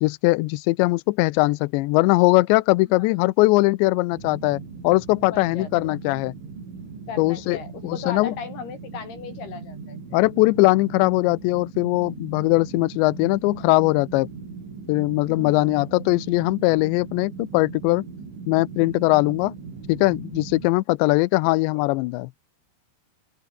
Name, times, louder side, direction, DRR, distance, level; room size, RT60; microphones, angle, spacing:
voice 1, 0.0-6.3 7.2-7.6 7.8-8.3 10.1-14.3 14.9-18.1 18.5-19.5 19.9-22.3, left 21 dB, 80° left, 2.7 m, -20 dB
sound 1, 4.1-20.7, right 5 dB, 75° right, 10.0 m, -39 dB
voice 2, 5.3-5.7 7.1-10.0 15.3-15.8 21.5-21.8, left 6 dB, 55° left, 6.4 m, -37 dB
open air
omnidirectional pair, 5.5 m